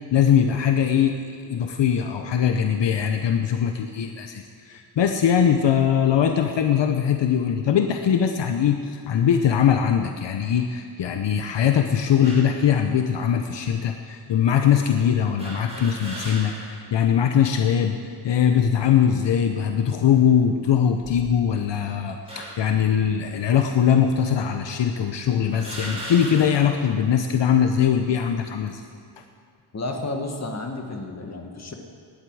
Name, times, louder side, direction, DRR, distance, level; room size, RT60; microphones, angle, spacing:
voice 1, 0.0-28.8, left 8 dB, 75° left, 5 dB, 0.9 m, -21 dB
sound 1, 12.2-12.6 13.4-13.5 15.4-16.8 17.3-17.4 18.5-19.0 19.6-19.9 20.8-21.7 22.3-22.8 23.7-23.8 24.7-24.8 25.5-26.8, right 1 dB, 15° right, 4.5 m, -38 dB
voice 2, 29.7-31.7, left 2 dB, 35° left, 3 dB, 1.8 m, -31 dB
18.5 x 11.0 x 4.9 m, 2.4 s
wide cardioid pair, 115°, 44 cm